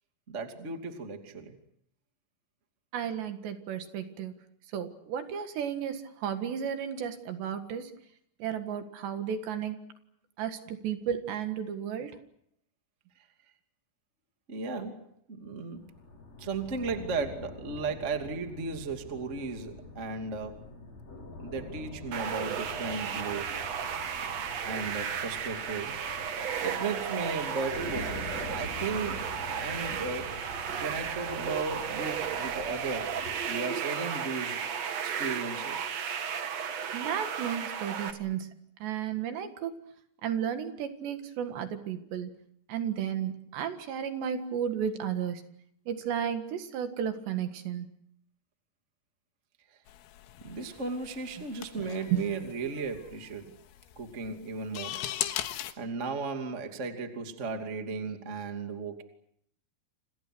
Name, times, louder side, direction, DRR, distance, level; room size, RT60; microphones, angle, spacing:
voice 1, 0.3-1.5 14.5-15.9 16.4-20.7 21.4-23.5 24.6-30.4 30.7-33.2 33.5-34.6 35.0-35.9 50.4-53.5 53.9-55.0 55.8-59.0, right 4 dB, 25° right, 5 dB, 1.5 m, -36 dB
voice 2, 2.9-4.3 4.7-7.9 8.4-9.8 10.4-12.2 36.9-39.8 40.2-42.3 42.7-45.4 45.9-47.9 51.4-51.5 52.1-52.2, right 8 dB, 65° right, 8 dB, 3.6 m, -33 dB
sound 1, 15.8-33.4, left 3 dB, 30° left, 7.2 m, -45 dB
sound 2, 22.1-38.1, right 7 dB, 85° right, 1.4 m, -34 dB
sound 3, 49.9-55.7, left 12 dB, 90° left, 4.1 m, -39 dB
29.5 x 27.5 x 6.2 m, 0.69 s
omnidirectional pair, 5.9 m